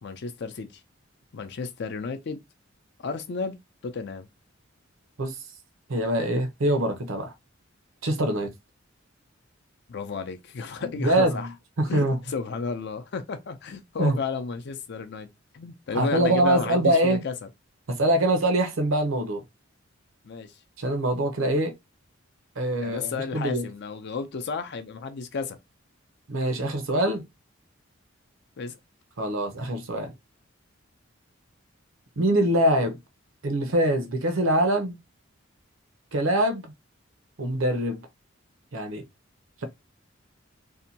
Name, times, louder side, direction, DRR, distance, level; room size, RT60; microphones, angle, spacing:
voice 1, 0.0-0.8 1.3-2.4 3.0-3.6 3.8-4.3 9.9-11.5 11.9-15.3 15.5-17.5 20.2-20.5 22.8-25.6 28.6-28.8, left 5 dB, 55° left, 0.5 m, -32 dB
voice 2, 5.9-7.3 8.0-8.5 10.8-11.5 11.8-12.2 14.0-14.2 15.9-17.2 17.9-19.4 20.8-21.7 22.6-23.7 26.3-27.2 29.2-30.1 32.2-33.0 33.4-35.0 36.1-36.7 37.4-38.0 38.7-39.0, right 1 dB, 75° right, 0.7 m, -24 dB
2.7 x 2.2 x 2.7 m
head